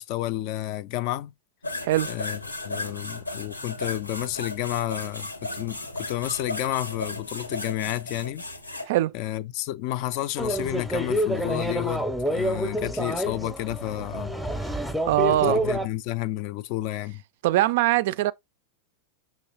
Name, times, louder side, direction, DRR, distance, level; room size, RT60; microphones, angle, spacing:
voice 1, 0.0-1.3 2.1-2.4 2.6-8.4 9.1-14.3 15.3-17.2, left 15 dB, 45° left, 0.3 m, -31 dB
sound 1, 1.6-8.9, left 2 dB, 80° left, 0.6 m, -35 dB
sound 2, 10.4-15.9, equal, ahead, 0.6 m, -28 dB
voice 2, 15.0-15.6 17.4-18.3, right 15 dB, 50° right, 0.3 m, -22 dB
6.1 x 2.9 x 2.9 m
figure-of-eight pair, 90°, 0 cm